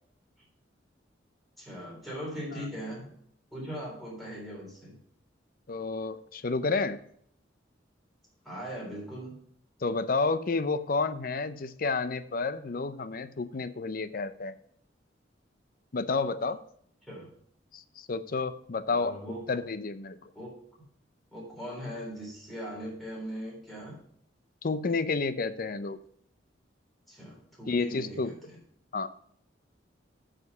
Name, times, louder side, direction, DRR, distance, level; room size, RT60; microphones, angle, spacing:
voice 1, 1.6-3.1 3.5-5.0 8.5-9.4 17.0-17.3 18.9-19.4 20.3-20.5 21.3-24.0 27.1-28.5, equal, ahead, -5 dB, 3.5 m, -40 dB
voice 2, 5.7-7.0 9.8-14.5 15.9-16.6 17.7-19.2 19.5-20.2 24.6-26.0 27.7-28.4 28.9-29.1, left 4 dB, 50° left, 13 dB, 0.5 m, -30 dB
9.6 x 5.1 x 5.9 m, 0.66 s
head